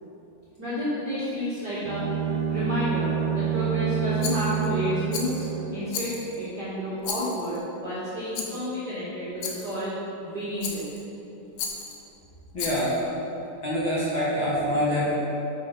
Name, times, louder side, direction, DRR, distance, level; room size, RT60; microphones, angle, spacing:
voice 1, 0.6-2.1 2.5-10.9 11.8-11.9, left 1 dB, 40° right, -11 dB, 1.6 m, -30 dB
Bowed string instrument, 1.8-5.9, right 8 dB, 80° right, 2.3 m, -28 dB
Rattle, 4.2-4.7 5.1-5.5 5.9-6.4 7.0-7.6 8.3-8.7 9.4-9.8 10.6-11.0 11.6-12.0 12.5-13.0, left 5 dB, 80° left, 2.5 m, -34 dB
voice 2, 12.5-12.9 13.6-15.1, equal, 45° left, -9 dB, 2.1 m, -25 dB
9.0 x 6.2 x 5.2 m, 2.9 s
omnidirectional pair, 3.9 m